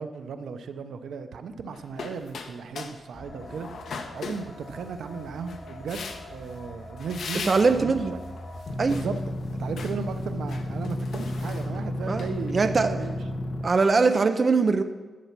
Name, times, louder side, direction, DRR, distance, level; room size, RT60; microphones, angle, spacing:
voice 1, 0.0-3.7 4.1-8.2 8.9-9.3 9.6-13.2, right 5 dB, 85° right, 9 dB, 0.7 m, -36 dB
sound 1, 1.7-3.0 3.3-4.9 5.5-6.5 7.0-7.8 8.3-9.2 9.5-10.0 10.4-12.5, left 5 dB, 70° left, 0.9 m, -39 dB
sound 2, 3.1-8.6, left 1 dB, 20° left, 1.4 m, -43 dB
voice 2, 7.5-8.2 8.8-9.0 12.1-12.2 12.5-12.9 13.6-14.8, right 4 dB, 30° right, 7 dB, 0.5 m, -21 dB
sound 3, 8.7-13.7, left 1 dB, 45° left, 1.1 m, -32 dB
11.5 x 7.4 x 5.9 m, 1.3 s
wide cardioid pair, 175°, 0 cm